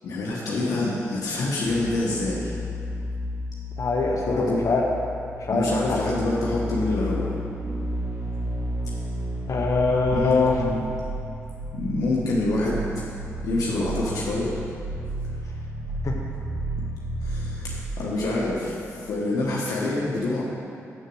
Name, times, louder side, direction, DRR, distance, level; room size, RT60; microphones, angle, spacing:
voice 1, 0.0-2.5 4.2-4.8 5.5-7.3 10.1-10.8 11.7-12.8 13.4-14.5 17.2-20.4, left 2 dB, 85° left, -6 dB, 1.2 m, -26 dB
War Horn Horror, 1.6-19.2 19.4-19.5, right 1 dB, 45° right, 1.4 m, -32 dB
voice 2, 3.8-4.8 5.5-6.0 9.5-10.5 16.0-16.1, left 4 dB, 65° left, -1 dB, 1.1 m, -23 dB
7.4 x 6.7 x 6.3 m, 2.5 s
supercardioid pair, 50°, 6 cm